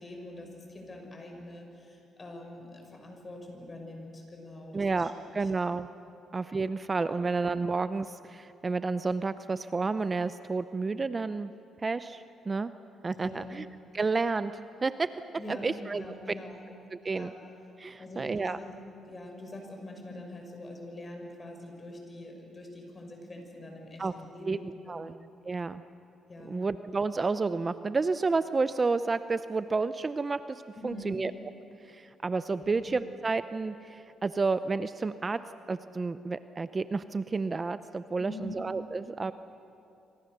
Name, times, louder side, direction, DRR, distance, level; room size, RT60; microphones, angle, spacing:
voice 1, 0.0-5.1 5.4-5.5 7.0-7.2 13.1-13.5 15.4-16.6 17.1-17.4 18.0-18.7 19.0-25.1 26.3-26.6 30.7-31.2 32.6-32.9 38.2-38.6, left 1 dB, 30° left, 2 dB, 6.3 m, -44 dB
voice 2, 4.7-5.9 6.3-11.5 11.8-12.7 13.0-13.6 13.9-15.1 15.5-16.0 16.9-17.3 17.8-18.6 24.0-24.1 24.4-24.6 24.9-25.1 25.4-25.8 26.4-31.3 31.8-35.4 35.7-39.3, right 4 dB, 30° right, 12 dB, 0.6 m, -30 dB
26.5 x 26.0 x 6.8 m, 2.8 s
cardioid pair, 90°, 0 cm